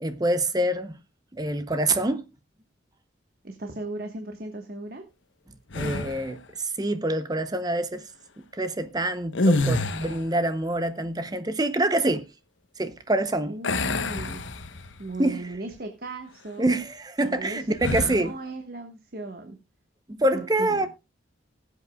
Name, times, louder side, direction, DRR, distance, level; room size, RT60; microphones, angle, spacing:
voice 1, 0.0-0.9 1.3-2.2 5.7-8.1 8.5-12.3 12.8-13.5 15.2-15.4 16.6-18.3 20.1-20.9, right 1 dB, 20° right, 0.7 m, -26 dB
voice 2, 3.4-5.0 13.5-14.5 15.0-16.7 17.2-19.6 20.3-20.9, right 2 dB, 50° right, 1.3 m, -37 dB
sound 1, 5.7-6.4 9.3-10.4 13.6-15.1 15.5-15.7 17.8-18.3, left 2 dB, 75° left, 1.0 m, -27 dB
20.5 x 8.2 x 2.3 m
head